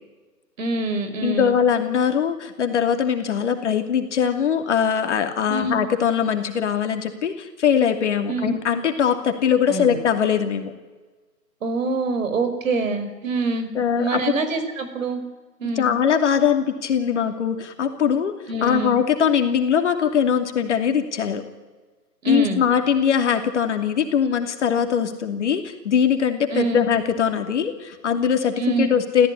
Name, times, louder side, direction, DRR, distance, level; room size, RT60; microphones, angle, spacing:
voice 1, 0.6-1.6 5.5-5.8 8.3-8.5 9.7-10.0 11.6-13.7 14.0-15.2 15.6-15.9 18.5-19.0 22.2-22.6 26.5-26.8 28.6-28.9, right 3 dB, 50° right, 8 dB, 5.2 m, -25 dB
voice 2, 1.2-10.7 13.7-14.2 15.8-18.3 18.6-21.4 22.3-29.3, left 7 dB, 45° left, 6 dB, 2.8 m, -21 dB
28.0 x 15.0 x 9.9 m, 1.3 s
hypercardioid pair, 155°, 49 cm